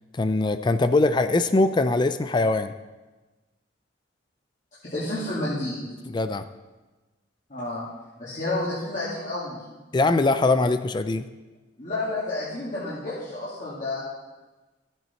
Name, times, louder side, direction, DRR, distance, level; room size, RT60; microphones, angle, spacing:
voice 1, 0.1-2.7 6.1-6.4 9.9-11.3, left 2 dB, 25° left, 11 dB, 0.4 m, -22 dB
voice 2, 4.8-5.8 7.5-7.8 8.2-9.6 11.8-14.0, left 2 dB, 40° left, -9 dB, 2.4 m, -30 dB
14.0 x 7.9 x 4.3 m, 1.2 s
head